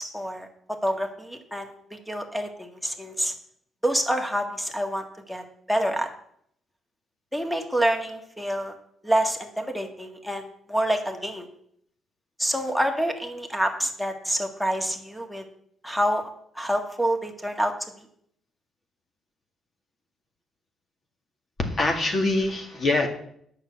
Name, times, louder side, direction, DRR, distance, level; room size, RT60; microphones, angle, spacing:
voice 1, 0.0-3.3 3.8-6.1 7.3-8.7 9.0-11.5 12.4-15.5 15.8-16.3 16.6-17.7, equal, ahead, 5 dB, 1.8 m, -27 dB
voice 2, 21.6-23.1, left 2 dB, 40° left, 4 dB, 2.2 m, -24 dB
9.2 x 6.6 x 7.9 m, 0.68 s
cardioid pair, 90°, 0 cm